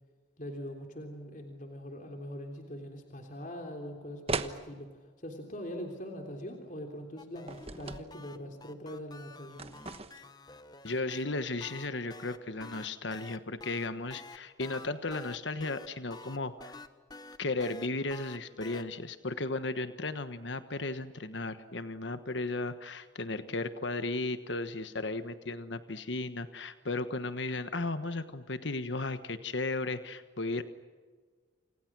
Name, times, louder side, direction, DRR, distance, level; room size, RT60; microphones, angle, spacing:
voice 1, 0.4-9.7, equal, 40° left, 3 dB, 3.4 m, -42 dB
sound 1, 4.3-4.6 7.5-8.1 9.6-10.3, right 3 dB, 30° right, 1.2 m, -36 dB
sound 2, 7.2-11.2 11.6-18.8, left 3 dB, 20° left, 1.0 m, -49 dB
voice 2, 10.8-16.8 17.4-30.6, left 2 dB, 70° left, 11 dB, 1.3 m, -35 dB
28.5 x 28.5 x 6.2 m, 1.5 s
head